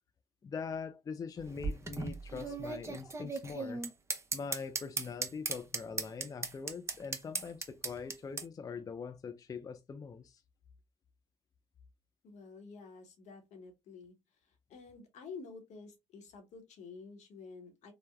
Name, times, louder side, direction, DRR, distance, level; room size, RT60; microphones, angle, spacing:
voice 1, 0.4-3.8 4.3-10.4, left 5 dB, 30° left, 0.3 m, -42 dB
sound 1, 1.4-8.4, right 3 dB, 20° right, 0.6 m, -37 dB
voice 2, 12.2-14.2 14.4-17.9, left 4 dB, 70° left, 1.0 m, -50 dB
3.2 x 2.0 x 2.2 m
supercardioid pair, 65°, 12 cm